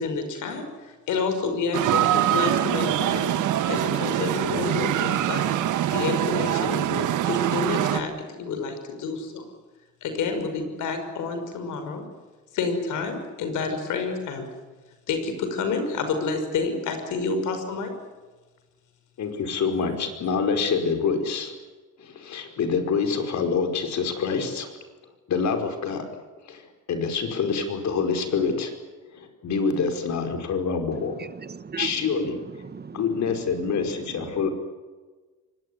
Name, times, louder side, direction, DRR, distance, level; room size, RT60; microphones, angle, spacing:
voice 1, 0.0-3.3 3.7-5.5 5.9-8.1 8.4-9.4 10.0-12.0 12.5-14.5 15.1-17.9, left 4 dB, 85° left, 7 dB, 5.7 m, -29 dB
sound 1, 1.7-8.0, right 12 dB, 80° right, 1.6 m, -24 dB
voice 2, 19.2-21.5 22.0-24.8 25.3-26.0 26.4-28.7 29.1-31.1 31.8-32.4 32.9-34.5, left 5 dB, 65° left, 6 dB, 5.2 m, -26 dB
voice 3, 31.2-31.9 32.6-33.0, right 6 dB, 35° right, 14 dB, 1.2 m, -36 dB
24.0 x 20.0 x 9.8 m, 1.3 s
cardioid pair, 90°, 30 cm